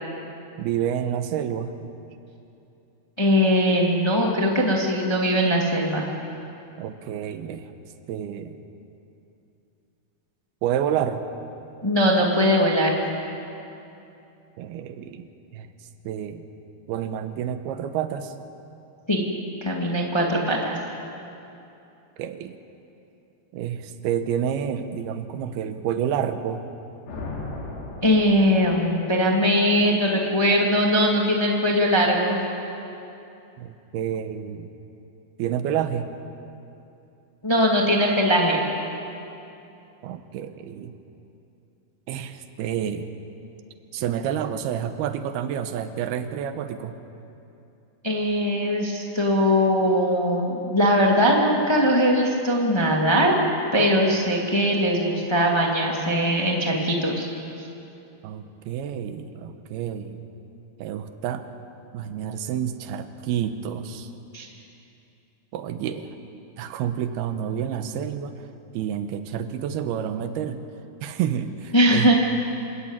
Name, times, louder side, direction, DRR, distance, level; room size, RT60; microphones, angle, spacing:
voice 1, 0.6-1.7 6.8-7.7 8.1-8.6 10.6-11.2 14.6-15.7 16.0-16.5 16.9-18.3 22.2-22.6 23.5-26.6 33.6-34.7 35.4-36.1 40.0-41.0 42.1-43.1 43.9-47.0 58.2-60.2 60.8-61.4 61.9-64.1 65.5-66.1 66.6-68.3 68.7-70.6 71.0-72.1, right 9 dB, 75° right, 9 dB, 2.8 m, -29 dB
voice 2, 3.2-6.0 11.8-13.0 19.1-19.2 19.6-20.8 28.0-32.4 37.4-38.6 48.0-53.3 53.7-57.3 64.3-64.5 71.7-72.1, equal, 40° left, -1 dB, 0.3 m, -20 dB
sound 1, 27.1-29.0, left 2 dB, 90° left, 5.1 m, -36 dB
26.5 x 14.0 x 8.9 m, 2.8 s
omnidirectional pair, 4.7 m